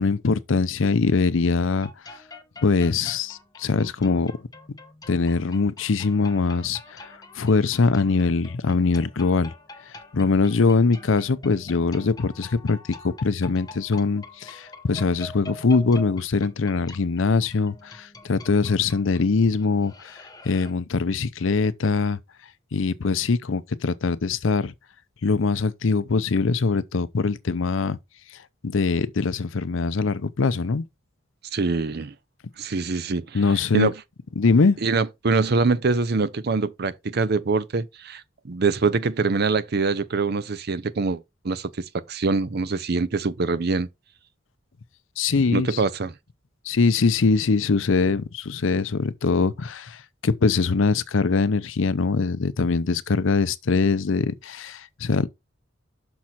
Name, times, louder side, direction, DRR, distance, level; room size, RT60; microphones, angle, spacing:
voice 1, 0.0-1.9 2.6-4.3 5.1-9.5 10.1-12.8 13.0-22.2 22.7-24.7 25.2-28.0 28.6-30.9 33.3-33.9 34.4-34.8 45.2-45.8 46.7-55.3, left 4 dB, 75° left, 0.6 m, -22 dB
sound 1, 1.8-20.7, left 2 dB, 20° left, 0.8 m, -45 dB
voice 2, 31.5-32.1 32.6-33.4 33.7-33.9 34.8-43.9 45.5-46.1, right 4 dB, 55° right, 0.6 m, -24 dB
6.2 x 5.9 x 4.2 m
head